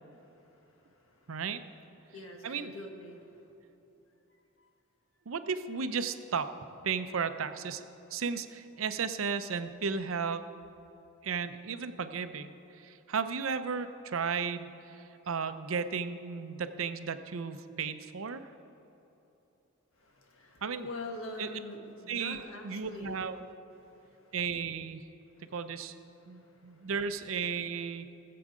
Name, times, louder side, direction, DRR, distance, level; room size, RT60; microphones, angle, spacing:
voice 1, 0.2-1.4 2.0-3.4 4.6-4.7 20.0-23.2 23.8-24.3 25.4-25.5 26.2-26.9, left 2 dB, 75° left, 2 dB, 1.4 m, -45 dB
voice 2, 1.3-1.6 2.4-2.7 5.3-6.5 6.8-7.8 8.1-10.5 11.2-18.5 20.6-20.9 21.4-21.5 22.1-23.4 24.3-25.0 25.5-25.9 26.3-28.1, right 5 dB, 75° right, 10 dB, 0.6 m, -34 dB
18.5 x 7.7 x 5.0 m, 2.9 s
head